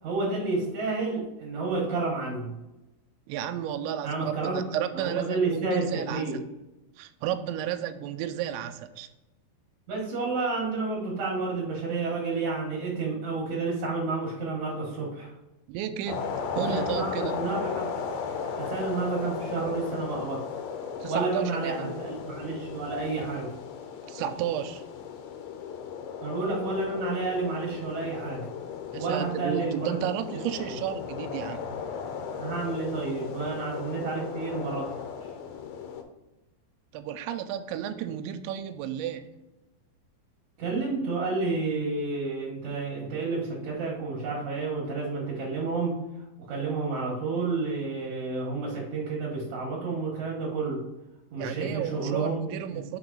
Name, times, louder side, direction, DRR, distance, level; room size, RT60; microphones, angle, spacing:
voice 1, 0.0-2.6 4.0-4.6 4.9-6.4 9.9-15.3 16.6-17.9 18.6-20.4 21.1-23.5 26.2-28.5 29.0-30.0 30.6-30.8 32.3-35.0 40.6-46.0 46.5-50.8 51.3-52.8, right 3 dB, 65° right, -3 dB, 1.8 m, -30 dB
voice 2, 3.3-6.2 7.0-9.1 15.7-17.4 21.0-21.9 24.1-24.8 28.9-31.8 36.9-39.2 51.4-53.0, right 10 dB, 90° right, 10 dB, 2.8 m, -33 dB
sound 1, 16.1-36.0, left 6 dB, 85° left, 3.0 m, -36 dB
6.3 x 4.0 x 3.7 m, 1.0 s
omnidirectional pair, 5.1 m